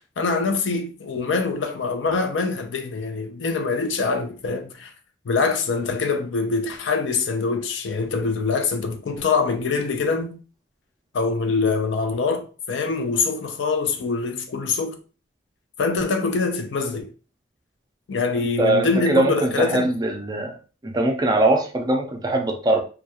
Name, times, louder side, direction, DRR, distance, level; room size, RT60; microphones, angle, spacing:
voice 1, 0.2-4.9 5.3-10.4 11.1-15.0 15.8-17.1 18.1-19.9, left 4 dB, 80° left, 0.5 m, -24 dB
voice 2, 18.4-20.6 20.8-22.8, right 1 dB, 20° right, 0.4 m, -22 dB
2.3 x 2.2 x 2.8 m
head